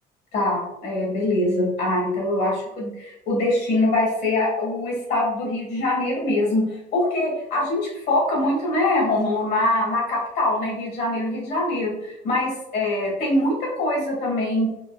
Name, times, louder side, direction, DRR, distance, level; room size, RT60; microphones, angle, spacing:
voice 1, 0.3-14.7, left 1 dB, 80° left, -3 dB, 1.4 m, -23 dB
3.8 x 2.1 x 2.5 m, 0.88 s
cardioid pair, 110°, 17 cm